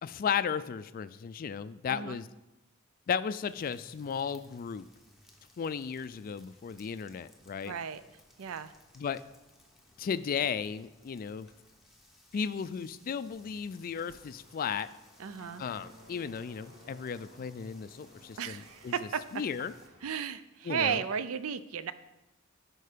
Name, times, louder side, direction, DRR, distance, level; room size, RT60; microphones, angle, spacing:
voice 1, 0.0-2.3 3.1-4.9 5.6-7.7 9.0-9.2 10.0-11.5 12.3-14.9 15.6-18.9 19.3-19.7 20.6-21.0, left 7 dB, 40° left, 14 dB, 0.3 m, -35 dB
voice 2, 1.8-2.2 7.7-8.0 8.4-8.7 15.2-15.6 18.4-19.2 20.0-21.9, right 7 dB, 85° right, 13 dB, 0.4 m, -34 dB
sound 1, 3.4-19.9, left 1 dB, ahead, 1.1 m, -61 dB
sound 2, 13.3-20.2, equal, 30° right, 2.7 m, -57 dB
11.0 x 4.7 x 5.0 m, 1.0 s
head